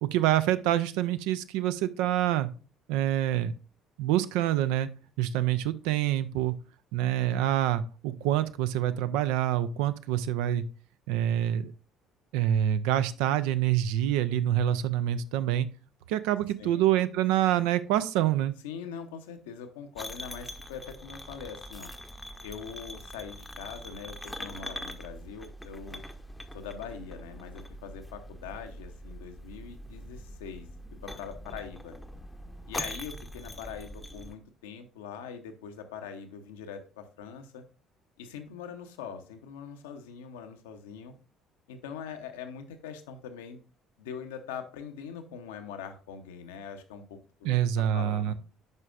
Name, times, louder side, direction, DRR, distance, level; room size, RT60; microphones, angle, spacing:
voice 1, 0.0-2.5 2.9-3.5 4.0-4.9 5.2-6.5 6.9-10.6 11.1-11.7 12.3-15.7 16.1-18.5 47.4-48.3, right 12 dB, 65° right, 13 dB, 0.4 m, -26 dB
voice 2, 18.6-21.9 22.4-26.0 26.5-30.7 31.0-32.0 32.7-37.6 38.2-41.1 41.7-43.6 44.0-48.3, left 7 dB, 70° left, 6 dB, 0.7 m, -42 dB
sound 1, 20.0-34.4, left 1 dB, 10° left, 0.7 m, -43 dB
10.5 x 4.9 x 2.4 m, 0.38 s
figure-of-eight pair, 50°, 0 cm